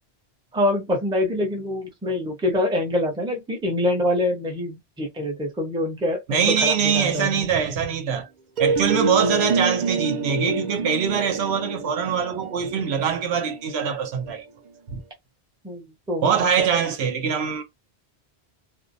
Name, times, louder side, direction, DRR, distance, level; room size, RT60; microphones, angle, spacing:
voice 1, 0.5-7.4 15.6-16.3 16.6-16.7, left 1 dB, 5° right, 0.5 m, -25 dB
voice 2, 6.3-8.3 8.6-14.4 14.9-15.0 16.2-17.6, right 7 dB, 75° right, 0.9 m, -23 dB
sound 1, 8.6-14.4, right 3 dB, 55° right, 0.5 m, -27 dB
2.5 x 2.0 x 2.5 m
omnidirectional pair, 1.1 m